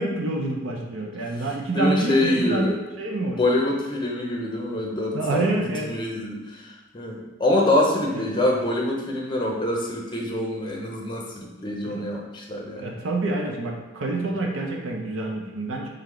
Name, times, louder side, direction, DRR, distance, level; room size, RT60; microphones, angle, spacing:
voice 1, 0.0-3.4 5.1-6.0 8.1-8.4 11.8-12.1 12.8-15.9, right 2 dB, 80° right, 0 dB, 0.7 m, -27 dB
voice 2, 1.7-2.8 3.3-5.5 5.8-12.9, left 1 dB, 25° left, -1 dB, 0.6 m, -25 dB
3.4 x 3.1 x 3.8 m, 1.1 s
head